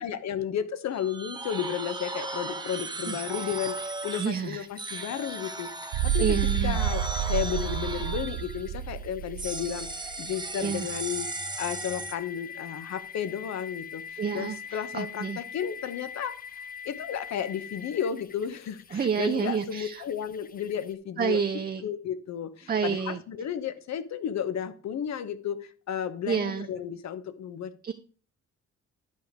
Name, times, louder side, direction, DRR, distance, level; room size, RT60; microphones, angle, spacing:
voice 1, 0.0-6.2 6.6-7.0 7.3-11.3 11.6-16.4 16.8-21.4 21.8-27.9, left 9 dB, 65° left, 13 dB, 1.0 m, -33 dB
sound 1, 0.9-4.4 4.8-8.8 9.4-12.2, right 2 dB, 15° right, 1.4 m, -36 dB
voice 2, 3.1-3.6 4.2-5.1 6.2-6.8 10.6-10.9 14.2-15.4 18.9-20.0 21.2-21.8 22.7-23.2 26.3-26.7 27.8-27.9, right 7 dB, 30° right, 7 dB, 0.6 m, -29 dB
sound 2, 3.4-20.9, left 7 dB, 30° left, 0.5 m, -45 dB
sound 3, 5.9-10.1, right 10 dB, 90° right, 0.5 m, -29 dB
11.5 x 5.1 x 4.6 m, 0.41 s
cardioid pair, 90°, 30 cm